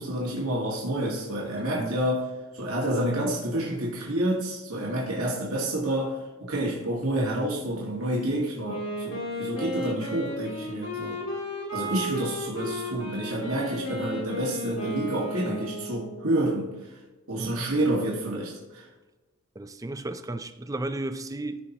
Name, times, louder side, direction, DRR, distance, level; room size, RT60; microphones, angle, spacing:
voice 1, 0.0-2.2 2.5-11.2 11.7-17.0 17.3-18.9, right 1 dB, 90° right, -3 dB, 1.7 m, -29 dB
Wind instrument woodwind instrument, 8.6-16.4, left 1 dB, 80° left, 3.2 m, -34 dB
voice 2, 17.4-17.7 19.6-21.6, right 2 dB, 15° right, 10 dB, 0.4 m, -34 dB
14.5 x 5.6 x 2.9 m, 1.2 s
head